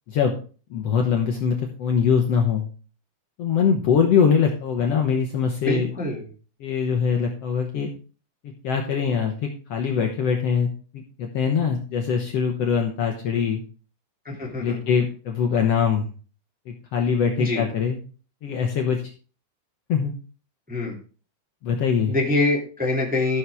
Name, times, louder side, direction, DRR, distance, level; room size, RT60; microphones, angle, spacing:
voice 1, 0.7-2.7 3.4-5.9 6.6-7.9 8.6-13.6 14.3-16.1 16.7-18.0 18.4-19.0 19.9-20.1 21.6-22.1, left 6 dB, 60° left, 2 dB, 1.9 m, -23 dB
voice 2, 5.6-6.3 14.2-14.8 17.4-17.6 20.7-20.9 22.1-23.4, left 2 dB, 5° right, -2 dB, 1.9 m, -25 dB
14.0 x 6.5 x 3.5 m, 0.38 s
omnidirectional pair, 3.6 m